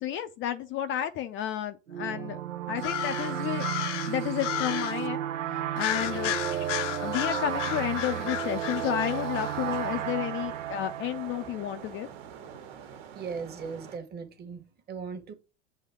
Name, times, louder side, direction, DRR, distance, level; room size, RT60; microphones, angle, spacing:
voice 1, 0.0-2.4 2.7-3.7 4.1-5.2 5.5-6.4 7.0-12.1, left 11 dB, 35° left, 0.5 m, -31 dB
sound 1, 1.9-12.2, right 11 dB, 85° right, 0.8 m, -33 dB
sound 2, 2.8-5.1 5.8-9.8, left 12 dB, 75° left, 0.8 m, -34 dB
sound 3, 7.4-14.0, right 7 dB, 55° right, 1.5 m, -48 dB
voice 2, 13.1-15.3, right 5 dB, 25° right, 1.3 m, -38 dB
7.7 x 2.7 x 5.8 m
hypercardioid pair, 100°, 37 cm